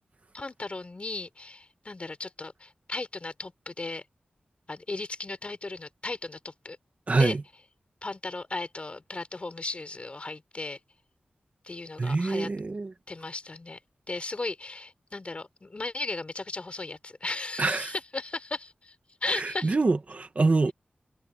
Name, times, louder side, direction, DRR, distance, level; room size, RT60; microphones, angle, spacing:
voice 1, 0.3-4.0 4.7-6.8 7.2-7.4 8.0-10.8 11.6-12.5 13.1-13.8 14.1-18.9 19.2-19.7, left 3 dB, 35° left, 4.3 m, -36 dB
voice 2, 7.1-7.4 12.0-12.9 17.6-17.9 19.3-20.7, right 3 dB, 45° right, 1.6 m, -25 dB
wide cardioid pair, 100°, 3 cm